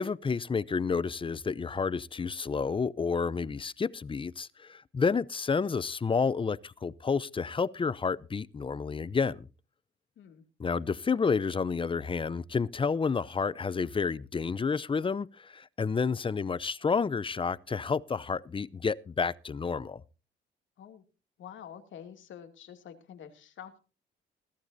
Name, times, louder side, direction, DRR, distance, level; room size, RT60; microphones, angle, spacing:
voice 1, 0.0-9.5 10.6-20.0, left 5 dB, 25° left, 0.7 m, -30 dB
voice 2, 21.4-23.8, left 9 dB, 75° left, 2.6 m, -47 dB
21.0 x 11.5 x 2.7 m
cardioid pair, 90°, 20 cm